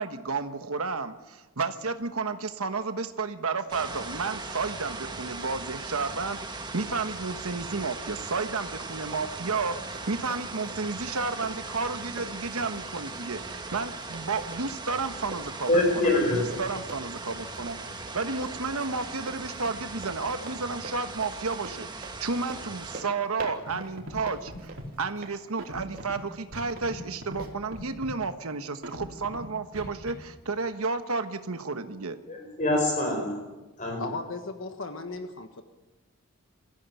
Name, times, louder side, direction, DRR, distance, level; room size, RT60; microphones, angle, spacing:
voice 1, 0.0-15.7 16.3-17.8 18.1-24.7 25.0-32.2, right 4 dB, 80° right, 8 dB, 1.2 m, -32 dB
sound 1, 3.7-23.0, right 3 dB, 20° right, 1.6 m, -39 dB
Run, 9.1-26.9 27.4-27.5, right 2 dB, 40° right, 3.2 m, -46 dB
voice 2, 15.7-16.6 32.3-33.3 33.8-34.0, left 2 dB, 35° left, 2 dB, 4.7 m, -25 dB
Scratching (performance technique), 23.7-23.8 24.0-24.2 24.5-24.9 25.6-26.1 26.5-27.0 27.2-27.4 27.7-28.1 28.8-29.4 29.7-30.1, equal, 65° right, 3.8 m, -39 dB
voice 3, 34.0-35.6, left 3 dB, 60° left, 6 dB, 1.4 m, -36 dB
23.5 x 15.5 x 9.3 m, 1.1 s
head